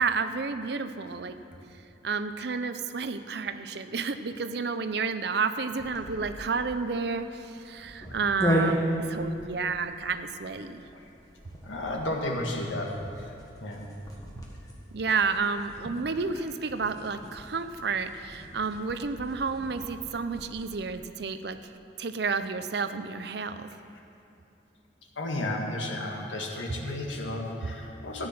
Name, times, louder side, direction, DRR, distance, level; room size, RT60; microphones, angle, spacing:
voice 1, 0.0-1.4 2.0-10.8 14.9-21.6 22.0-23.7, right 4 dB, 60° right, 10 dB, 0.6 m, -31 dB
sound 1, 5.8-20.7, equal, 20° left, 1.5 m, -36 dB
voice 2, 11.6-13.3 13.6-13.9 25.2-28.3, left 1 dB, 85° left, 0 dB, 1.8 m, -33 dB
14.0 x 9.5 x 6.0 m, 2.8 s
head